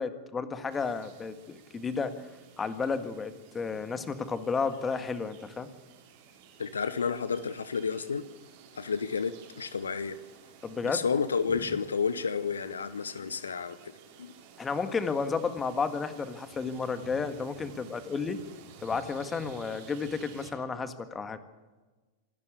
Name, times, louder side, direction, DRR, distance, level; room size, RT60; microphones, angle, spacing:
voice 1, 0.0-2.1 2.6-5.7 10.6-11.0 14.6-18.4 18.8-21.4, left 5 dB, 15° left, 11 dB, 1.8 m, -32 dB
sound 1, 0.7-20.5, right 6 dB, 50° right, 4.0 m, -53 dB
voice 2, 6.6-8.3 8.8-10.2 10.8-13.9 14.2-14.3, left 5 dB, 70° left, 16 dB, 0.9 m, -31 dB
26.5 x 12.5 x 8.4 m, 1.2 s
figure-of-eight pair, 90°, 0 cm